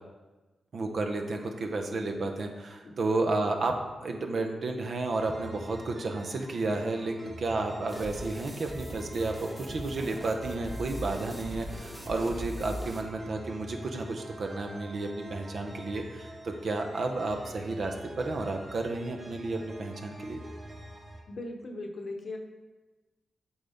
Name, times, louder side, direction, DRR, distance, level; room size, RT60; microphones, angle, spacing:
voice 1, 0.7-3.8 4.0-20.4, right 2 dB, 65° right, 3 dB, 0.7 m, -32 dB
sound 1, 5.2-21.2, equal, 45° right, 1.8 m, -46 dB
sound 2, 7.9-13.0, equal, 20° right, 1.2 m, -40 dB
voice 2, 21.3-22.4, left 2 dB, 60° left, 3 dB, 0.9 m, -40 dB
8.0 x 4.0 x 3.5 m, 1.2 s
supercardioid pair, 40°, 0 cm